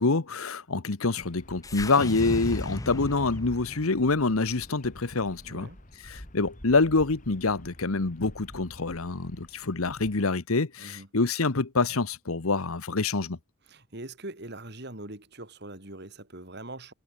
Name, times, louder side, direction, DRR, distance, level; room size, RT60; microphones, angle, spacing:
voice 1, 0.0-5.7 6.1-13.4, left 3 dB, 80° left, 1.2 m, -26 dB
Bird vocalization bird call bird song, 1.2-10.2, left 1 dB, 35° left, 4.0 m, -50 dB
sound 1, 1.6-5.9, left 1 dB, 15° left, 0.7 m, -37 dB
voice 2, 5.4-5.8 10.8-11.1 13.7-16.9, right 2 dB, 50° right, 3.4 m, -42 dB
head